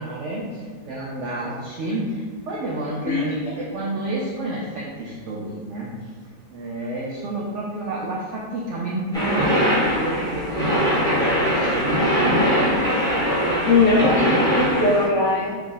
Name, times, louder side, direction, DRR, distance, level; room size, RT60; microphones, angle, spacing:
voice 1, 0.0-6.1 6.5-11.9 12.2-14.5, right 2 dB, 80° right, -4 dB, 0.6 m, -30 dB
sound 1, 9.1-15.0, equal, 5° left, 0.8 m, -21 dB
voice 2, 13.7-15.6, left 3 dB, 70° left, -6 dB, 0.7 m, -19 dB
3.3 x 2.5 x 3.7 m, 1.5 s
omnidirectional pair, 1.8 m